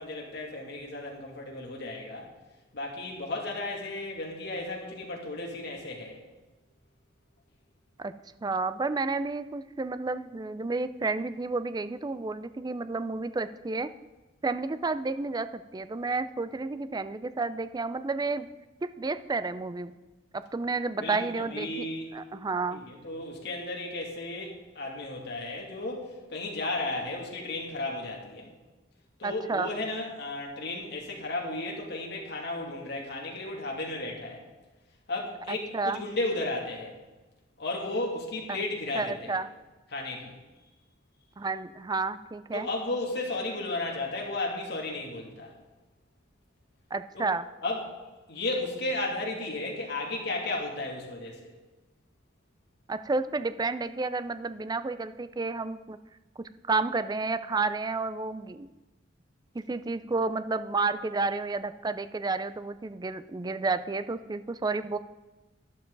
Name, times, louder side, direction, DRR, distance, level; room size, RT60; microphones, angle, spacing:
voice 1, 0.0-2.3 2.7-6.2 21.0-22.1 22.7-28.5 29.2-34.4 35.1-36.9 37.6-39.4 39.9-40.3 42.5-45.5 47.1-47.3 47.6-47.8 48.3-51.5, left 2 dB, 60° left, -1 dB, 2.5 m, -34 dB
voice 2, 8.4-13.9 14.4-18.5 18.8-19.9 20.3-21.9 22.1-22.8 29.2-29.7 35.5-36.0 38.5-38.6 38.9-39.5 41.4-42.7 46.9-47.5 52.9-56.0 56.4-58.7 59.5-65.0, right 3 dB, 20° right, 12 dB, 0.4 m, -31 dB
11.5 x 11.5 x 3.9 m, 1.1 s
head